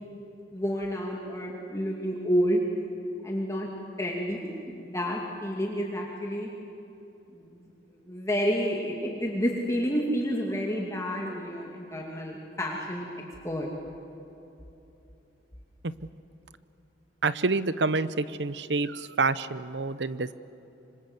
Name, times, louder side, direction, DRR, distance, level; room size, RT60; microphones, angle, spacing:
voice 1, 0.5-2.6 3.2-3.7 4.0-6.5 7.3-13.1 13.4-13.7, equal, 15° left, -1 dB, 2.5 m, -30 dB
voice 2, 17.2-20.3, right 3 dB, 85° right, 15 dB, 0.9 m, -27 dB
26.0 x 25.5 x 8.1 m, 3.0 s
head